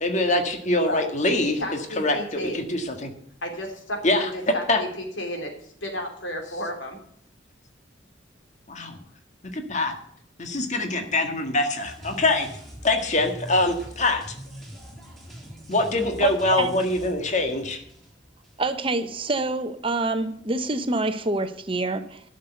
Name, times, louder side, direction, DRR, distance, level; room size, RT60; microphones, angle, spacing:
voice 1, 0.0-1.6 2.0-2.2 2.5-3.1 4.0-4.3 4.7-4.8 8.7-9.0 9.5-9.9 10.4-12.5 12.8-14.2 15.7-17.8, left 2 dB, 40° left, 5 dB, 1.7 m, -23 dB
voice 2, 1.6-2.6 3.4-7.0, equal, 85° left, 2 dB, 3.3 m, -33 dB
sound 1, 11.8-18.7 19.0-19.1, equal, ahead, 3.2 m, -42 dB
voice 3, 16.2-16.7 18.6-22.2, right 2 dB, 30° right, 9 dB, 0.9 m, -26 dB
11.5 x 6.8 x 8.0 m, 0.67 s
head